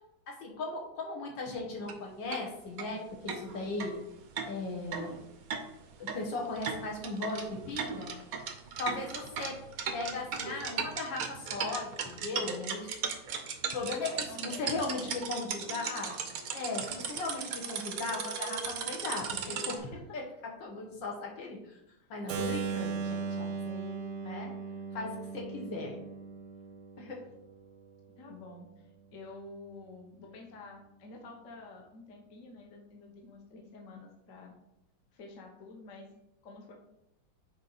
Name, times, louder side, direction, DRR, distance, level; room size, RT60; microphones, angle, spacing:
voice 1, 0.3-4.0 4.5-5.2 6.0-8.1 8.8-9.6 9.9-12.9 13.4-16.2 16.5-19.8 20.1-20.2 20.6-21.8 22.1-24.5 24.9-26.1 27.0-27.2, left 3 dB, 65° left, 0 dB, 1.8 m, -37 dB
sound 1, 1.8-2.0 2.3-2.4 2.8-2.9 3.3-19.8, right 6 dB, 65° right, 0.9 m, -37 dB
voice 2, 14.1-15.3 19.7-20.2 22.0-22.2 28.2-34.6 35.1-36.1 36.4-36.7, left 3 dB, 45° left, 0 dB, 1.2 m, -49 dB
Keyboard (musical), 22.3-28.1, right 5 dB, 85° right, 1.7 m, -38 dB
6.7 x 4.4 x 4.0 m, 0.84 s
omnidirectional pair, 2.3 m